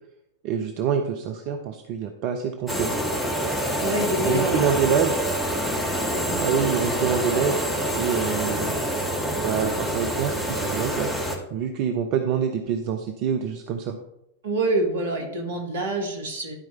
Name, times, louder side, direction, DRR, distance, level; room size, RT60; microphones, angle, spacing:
voice 1, 0.4-2.9 4.3-5.2 6.4-7.7 7.9-8.7 9.4-11.1 11.5-14.0, right 7 dB, 45° right, 5 dB, 0.6 m, -26 dB
sound 1, 2.7-11.4, right 1 dB, 10° left, 1.5 m, -26 dB
voice 2, 3.8-4.6 6.1-6.4 14.4-16.6, right 2 dB, 65° right, 2 dB, 1.6 m, -26 dB
11.0 x 4.5 x 4.2 m, 0.86 s
figure-of-eight pair, 90°, 0 cm